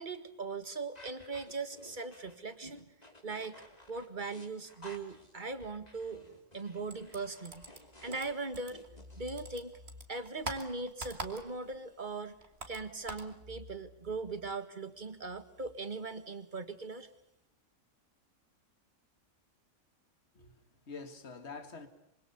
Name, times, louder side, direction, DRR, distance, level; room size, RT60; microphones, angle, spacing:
voice 1, 0.0-2.9 3.2-3.6 3.9-6.2 6.5-7.7 8.0-8.8 9.2-9.7 10.1-12.3 12.7-17.1, right 3 dB, 40° right, 2.0 m, -39 dB
sound 1, 0.9-9.2, left 1 dB, 30° left, 3.6 m, -55 dB
sound 2, 6.9-9.0 9.3-11.8 12.0-13.3, right 2 dB, 55° right, 3.0 m, -44 dB
voice 2, 20.3-21.9, left 4 dB, 55° left, 2.3 m, -46 dB
26.0 x 25.0 x 7.0 m
omnidirectional pair, 1.3 m